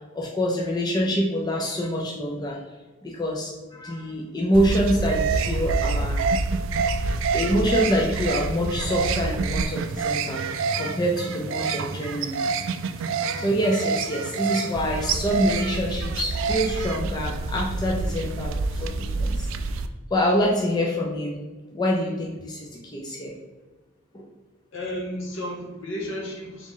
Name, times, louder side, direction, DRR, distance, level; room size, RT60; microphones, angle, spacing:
voice 1, 0.1-2.6 3.0-6.2 7.3-10.4 10.8-12.4 13.4-19.5 20.1-21.4 21.7-23.3 24.1-24.2, equal, 20° left, -1 dB, 0.4 m, -25 dB
sound 1, 4.5-19.9, right 4 dB, 65° right, 0.3 m, -27 dB
voice 2, 24.7-26.7, left 1 dB, 65° left, -1 dB, 1.0 m, -33 dB
3.7 x 3.1 x 3.6 m, 1.2 s
head